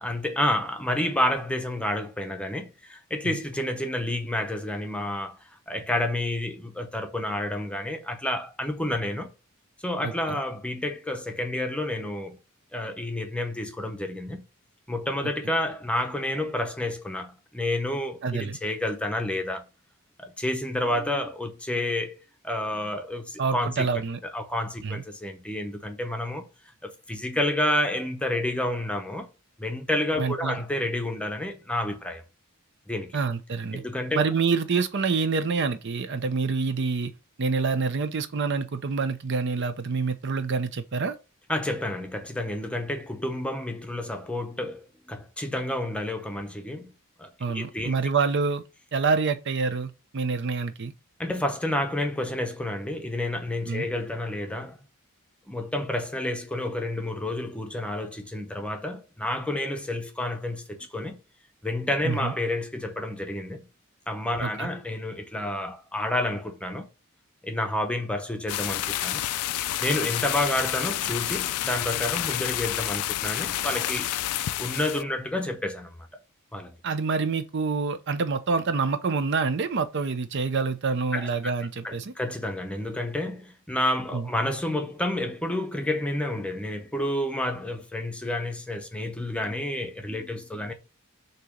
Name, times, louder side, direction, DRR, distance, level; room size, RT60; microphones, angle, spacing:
voice 1, 0.0-5.4 5.7-9.3 9.8-12.4 12.7-14.5 14.9-19.7 20.2-23.9 24.3-26.5 26.8-29.3 29.6-32.2 32.9-33.2 33.7-34.2 41.5-46.9 47.2-47.9 51.2-54.8 55.5-61.2 61.6-63.7 64.1-66.9 67.4-69.3 69.8-74.1 74.6-76.0 76.5-76.7 81.1-81.3 81.8-90.7, left 1 dB, 5° left, 0.7 m, -29 dB
voice 2, 10.0-10.4 18.2-18.6 23.4-24.2 24.8-25.0 30.2-30.6 33.1-33.8 34.1-37.1 37.4-41.2 47.4-48.6 48.9-50.9 53.7-53.9 62.0-62.3 64.4-64.7 76.8-82.1 84.1-84.3, right 4 dB, 55° right, 0.5 m, -27 dB
sound 1, 68.5-75.0, left 13 dB, 90° left, 0.4 m, -29 dB
6.6 x 2.9 x 4.9 m
head